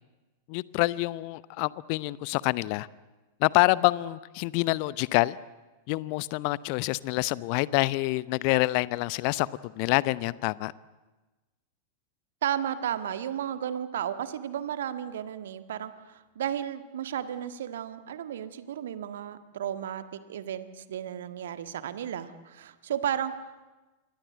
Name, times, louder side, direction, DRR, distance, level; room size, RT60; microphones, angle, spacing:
voice 1, 0.5-2.9 3.4-5.4 5.9-10.7, left 21 dB, 45° left, 20 dB, 0.8 m, -26 dB
voice 2, 12.4-23.3, right 10 dB, 60° right, 10 dB, 1.6 m, -33 dB
27.5 x 23.5 x 8.0 m, 1.2 s
figure-of-eight pair, 90°, 0 cm